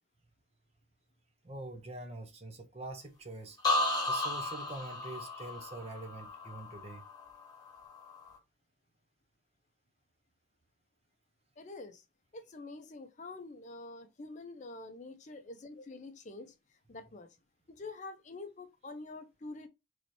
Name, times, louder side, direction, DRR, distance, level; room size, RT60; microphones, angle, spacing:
voice 1, 1.4-3.6 4.1-7.0, right 2 dB, 30° right, 0.7 m, -44 dB
sound 1, 3.6-7.4 7.8-8.3, left 2 dB, 20° left, 1.3 m, -34 dB
voice 2, 11.6-12.0 12.3-16.5 16.9-17.3 17.7-19.7, left 3 dB, 40° left, 0.5 m, -46 dB
3.1 x 2.9 x 4.1 m
head